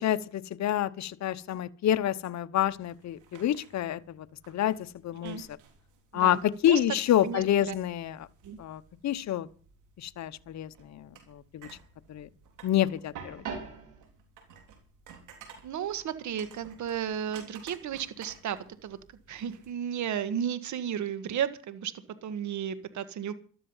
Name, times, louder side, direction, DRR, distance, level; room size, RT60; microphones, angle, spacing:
voice 1, 0.0-4.8 5.0-5.5 6.1-6.4 6.6-8.2 8.6-9.5 10.0-11.7 12.1-12.3 12.6-13.4, left 11 dB, 65° left, 1.0 m, -28 dB
sound 1, 2.5-19.7, right 6 dB, 85° right, 3.7 m, -50 dB
voice 2, 7.2-7.8 8.4-8.6 15.6-19.0 19.3-21.9 22.2-23.3, right 9 dB, 70° right, 1.7 m, -33 dB
14.0 x 12.5 x 5.6 m
cardioid pair, 90°, 30 cm